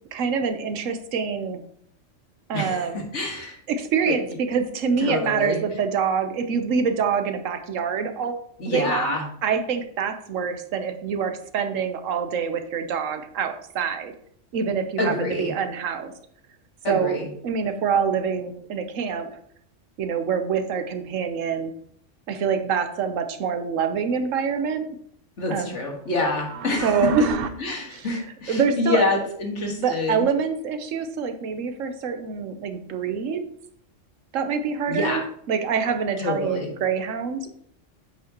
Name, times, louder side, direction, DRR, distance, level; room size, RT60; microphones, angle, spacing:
voice 1, 0.1-1.6 2.5-3.1 3.7-9.2 9.4-14.1 14.5-16.1 16.9-17.2 17.4-19.3 20.0-21.7 22.3-24.9 25.5-25.8 26.8-27.4 27.9-29.1 29.7-33.4 34.3-35.2 35.5-37.5, right 6 dB, 85° right, 7 dB, 1.2 m, -26 dB
voice 2, 2.5-2.9 3.1-3.6 4.1-4.2 5.0-5.6 8.6-9.3 15.0-15.5 16.8-17.2 25.4-27.0 27.6-30.3 34.9-35.2 36.2-36.7, left 2 dB, 65° left, 0 dB, 1.9 m, -26 dB
sound 1, 26.1-27.5, right 6 dB, 60° right, 0.7 m, -32 dB
8.5 x 6.0 x 2.9 m, 0.66 s
omnidirectional pair, 1.3 m